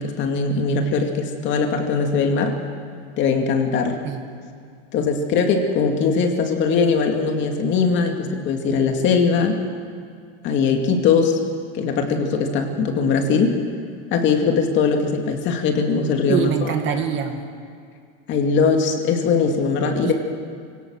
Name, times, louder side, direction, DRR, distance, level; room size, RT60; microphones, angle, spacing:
voice 1, 0.0-2.6 3.2-4.0 4.9-9.6 10.4-11.4 11.7-13.6 14.1-17.0 18.3-20.1, left 5 dB, 40° left, 3 dB, 2.3 m, -20 dB
voice 2, 16.3-17.4 20.0-20.1, right 8 dB, 40° right, 5 dB, 2.0 m, -23 dB
24.5 x 17.5 x 6.5 m, 2.3 s
supercardioid pair, 150°, 30 cm